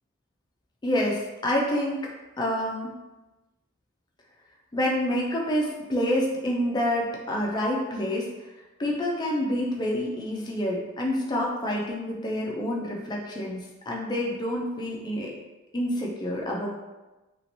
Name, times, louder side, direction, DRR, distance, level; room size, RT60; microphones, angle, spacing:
voice 1, 0.8-2.9 4.7-8.3 8.8-15.3 15.7-16.7, left 1 dB, 20° left, -2 dB, 0.4 m, -28 dB
2.9 x 2.8 x 2.9 m, 1.1 s
head